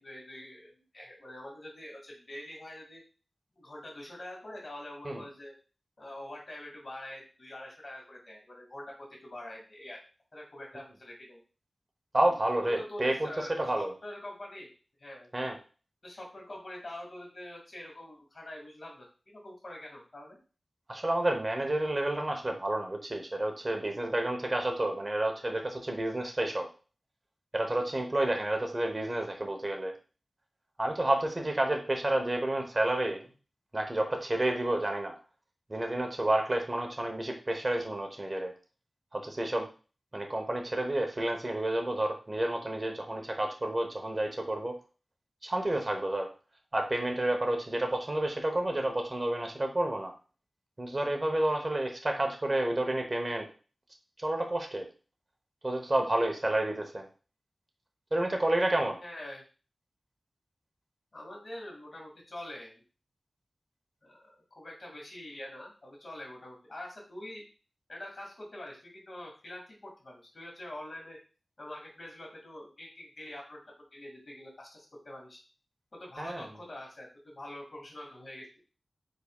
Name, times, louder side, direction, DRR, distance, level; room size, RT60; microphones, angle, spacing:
voice 1, 0.0-3.0 3.6-5.5 6.0-10.0 10.3-11.4 12.6-14.7 15.0-15.3 16.0-20.4 59.0-59.4 61.1-62.8 64.0-67.4 67.9-71.2 71.6-73.6 73.9-75.4 75.9-78.5, left 1 dB, 55° left, -2 dB, 2.1 m, -45 dB
voice 2, 12.1-13.3 13.6-13.9 15.3-15.6 20.9-26.7 27.5-29.9 30.8-33.3 33.7-35.1 35.7-38.5 39.1-39.7 40.1-44.7 45.4-46.3 46.7-50.1 50.8-53.4 54.2-54.9 55.6-57.1 58.1-59.0 76.2-76.5, right 1 dB, 35° right, 3 dB, 0.9 m, -30 dB
4.7 x 4.1 x 2.3 m, 0.36 s
wide cardioid pair, 60°, 0 cm